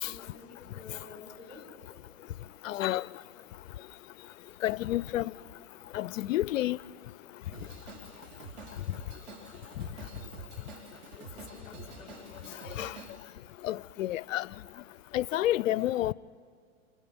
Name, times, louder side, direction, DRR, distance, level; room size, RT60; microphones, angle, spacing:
voice 1, 0.1-1.6 11.1-11.3 11.5-12.4, left 3 dB, 25° left, 5.2 m, -51 dB
voice 2, 2.6-3.0 4.6-5.3 5.9-6.8 12.8-12.9 13.6-14.5 15.1-16.1, left 14 dB, 85° left, 0.5 m, -29 dB
Drum kit / Drum, 7.5-13.1, right 3 dB, 55° right, 3.6 m, -47 dB
28.0 x 28.0 x 3.6 m
hypercardioid pair, 130°, 38 cm